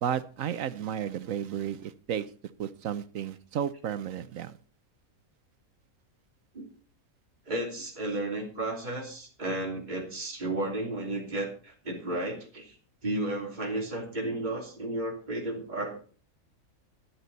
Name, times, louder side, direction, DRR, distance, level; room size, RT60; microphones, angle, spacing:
voice 1, 0.0-2.3 2.6-4.5, right 9 dB, 70° right, 1.1 m, -33 dB
voice 2, 7.5-12.7 13.0-16.0, right 1 dB, 30° right, 3.2 m, -33 dB
12.5 x 11.5 x 4.1 m
omnidirectional pair, 1.5 m